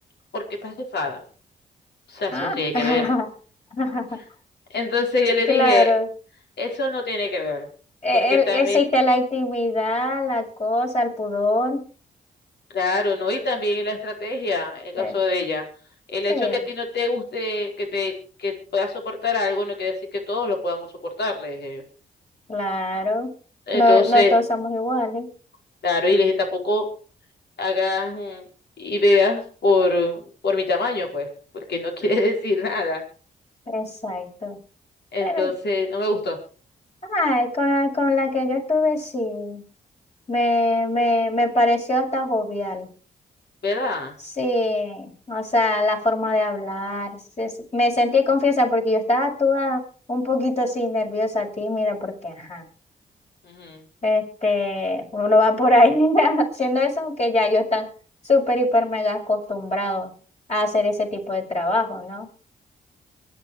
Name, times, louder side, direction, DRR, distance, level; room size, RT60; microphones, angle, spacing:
voice 1, 0.3-1.2 2.1-3.1 4.7-5.9 6.6-7.7 8.3-8.8 12.7-15.7 16.1-20.9 21.2-21.8 23.7-24.4 25.8-26.9 27.6-28.4 28.8-31.3 31.5-33.0 35.1-36.4 43.6-44.1 53.4-53.8, left 3 dB, 60° left, 2 dB, 4.7 m, -24 dB
voice 2, 2.3-3.3 3.7-4.2 5.5-6.1 8.0-11.8 15.0-15.2 16.3-16.6 22.5-23.3 23.7-25.3 33.7-34.6 35.2-35.5 37.0-39.6 40.3-42.9 44.4-49.8 50.1-52.6 54.0-57.9 58.2-60.1 60.5-62.3, left 1 dB, 35° left, 0 dB, 6.8 m, -22 dB
24.0 x 8.9 x 4.9 m, 0.40 s
hypercardioid pair, 40°, 19 cm